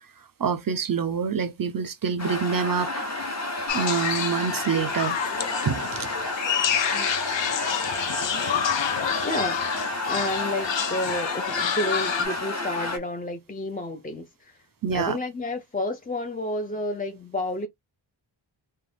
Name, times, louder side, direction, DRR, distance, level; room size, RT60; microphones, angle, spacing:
voice 1, 0.4-3.0 3.7-5.2 5.7-6.1 14.8-15.2, right 6 dB, 50° right, 0.5 m, -26 dB
sound 1, 2.2-13.0, left 2 dB, 35° left, 1.0 m, -31 dB
sound 2, 3.7-12.3, left 8 dB, 65° left, 0.6 m, -28 dB
voice 2, 6.9-7.3 9.2-9.6 10.0-14.6 14.9-17.7, left 1 dB, 20° left, 0.4 m, -31 dB
2.4 x 2.2 x 3.2 m
cardioid pair, 45°, 48 cm